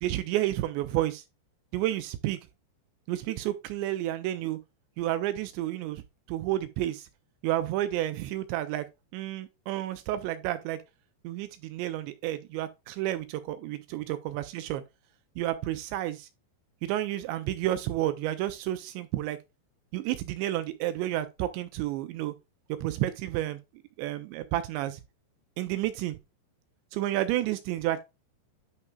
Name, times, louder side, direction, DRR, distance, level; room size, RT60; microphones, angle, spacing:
voice 1, 0.0-1.2 1.7-2.4 3.1-4.6 5.0-6.0 6.3-7.1 7.4-8.9 9.1-10.8 11.2-14.8 15.4-16.3 16.8-19.4 19.9-22.3 22.7-23.6 24.0-25.0 25.6-26.2 26.9-28.0, right 14 dB, 80° right, 2.7 m, -30 dB
9.5 x 5.7 x 2.3 m
omnidirectional pair, 5.3 m